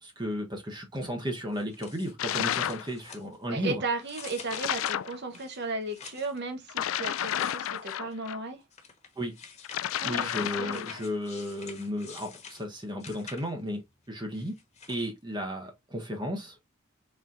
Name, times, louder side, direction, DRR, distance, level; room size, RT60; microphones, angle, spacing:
voice 1, 0.0-3.8 9.2-9.3 10.0-13.8 14.1-14.6 14.9-16.7, equal, 20° right, 0.9 m, -34 dB
sound 1, 1.5-3.6 4.0-6.4 7.1-8.1 8.7-13.7 14.3-15.1, left 6 dB, 35° left, 1.3 m, -48 dB
sound 2, 2.2-2.9 4.5-5.2 6.7-8.4 9.6-11.0, left 11 dB, 70° left, 0.3 m, -31 dB
voice 2, 3.5-8.6 10.0-10.9, right 3 dB, 55° right, 1.1 m, -35 dB
4.2 x 3.7 x 2.5 m
head